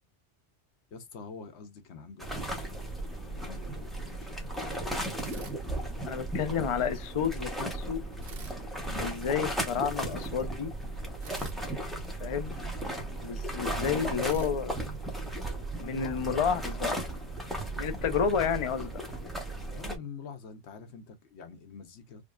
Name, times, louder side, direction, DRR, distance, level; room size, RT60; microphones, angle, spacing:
voice 1, 0.9-3.0 3.2-4.5 6.1-6.3 13.8-14.2 15.8-16.6 19.7-22.2, left 5 dB, 75° left, 1.0 m, -45 dB
sound 1, 2.2-20.0, right 1 dB, ahead, 0.8 m, -35 dB
sound 2, 5.2-6.4 8.2-9.6 11.2-12.9 14.2-15.7, right 5 dB, 60° right, 1.0 m, -50 dB
voice 2, 6.0-8.0 8.8-10.7 12.2-12.6 13.2-14.9 15.8-17.1 17.8-19.0, left 7 dB, 50° left, 0.4 m, -30 dB
5.0 x 2.2 x 2.4 m
omnidirectional pair, 1.2 m